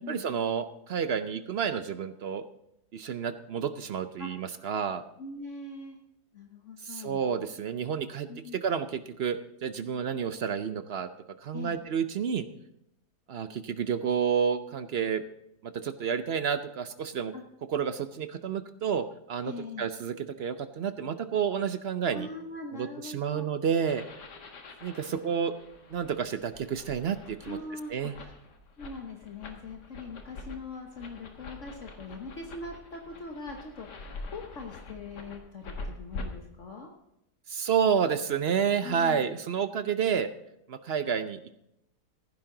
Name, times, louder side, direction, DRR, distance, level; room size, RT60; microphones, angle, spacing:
voice 1, 0.1-2.4 2.9-5.0 6.8-11.1 11.4-12.5 13.3-15.2 15.6-17.3 17.7-22.3 22.7-24.0 24.8-25.5 25.9-27.6 27.9-28.1 37.5-40.3 40.7-41.5, right 7 dB, 60° right, 11 dB, 0.6 m, -30 dB
voice 2, 5.2-6.0 6.3-7.3 8.3-8.6 11.5-11.8 17.3-17.4 19.4-19.8 22.1-23.5 25.1-25.2 27.4-28.3 28.8-36.9 38.8-39.4, left 3 dB, 50° left, 2 dB, 1.4 m, -42 dB
sound 1, 23.9-36.2, left 3 dB, 85° left, 2.1 m, -45 dB
16.0 x 10.5 x 3.8 m, 0.82 s
omnidirectional pair, 1.7 m